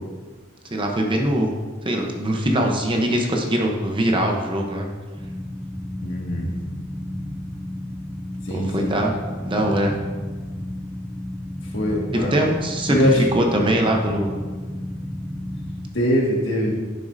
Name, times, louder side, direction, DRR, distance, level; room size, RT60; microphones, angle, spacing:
voice 1, 0.7-1.5 1.8-4.9 8.5-9.1 9.4-9.9 12.1-14.3, right 1 dB, 25° right, 1 dB, 0.8 m, -22 dB
sound 1, 5.2-15.9, left 1 dB, 5° right, 0.4 m, -32 dB
voice 2, 6.0-6.5 8.5-8.9 11.7-12.4 12.9-13.2 15.9-16.8, left 1 dB, 65° left, -3 dB, 1.8 m, -22 dB
10.5 x 6.5 x 2.6 m, 1.4 s
head